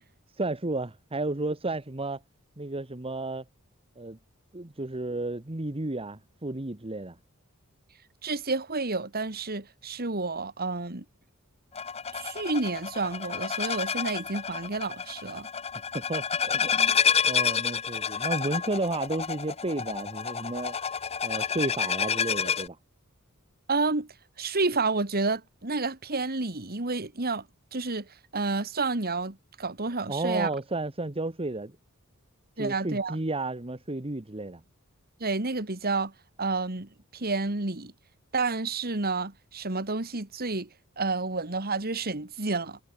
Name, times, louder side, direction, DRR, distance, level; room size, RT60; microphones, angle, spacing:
voice 1, 0.4-2.2 2.6-3.4 4.0-4.2 4.5-7.2 15.9-17.0 17.3-20.8 21.2-22.8 30.1-31.7 32.6-34.6, right 2 dB, 25° right, 1.3 m, -32 dB
voice 2, 8.2-11.0 12.1-15.5 23.7-24.1 24.4-27.4 27.7-28.1 28.3-30.5 32.6-33.2 35.2-36.1 36.4-37.9 38.3-40.7 41.0-42.8, right 3 dB, 45° right, 2.4 m, -30 dB
sound 1, 11.7-22.7, left 7 dB, 30° left, 0.8 m, -29 dB
head